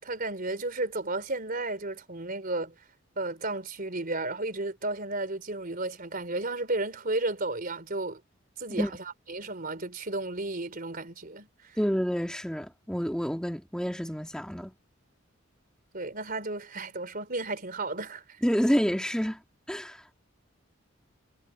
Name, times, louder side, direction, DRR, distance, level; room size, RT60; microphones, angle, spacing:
voice 1, 0.0-2.7 3.2-8.2 8.6-11.8 15.9-18.2, right 2 dB, 45° right, 4.0 m, -33 dB
voice 2, 11.8-14.7 18.4-19.4 19.7-20.0, equal, 5° left, 2.1 m, -28 dB
head